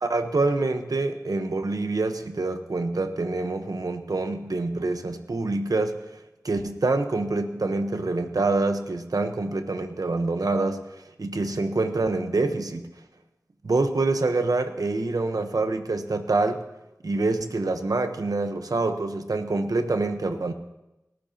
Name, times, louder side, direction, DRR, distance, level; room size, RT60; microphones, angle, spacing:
voice 1, 0.0-6.0 6.4-10.8 11.2-12.9 13.6-16.6 17.0-20.5, right 3 dB, 85° right, 7 dB, 1.1 m, -26 dB
29.0 x 14.0 x 2.9 m, 0.94 s
wide cardioid pair, 50°, 6 cm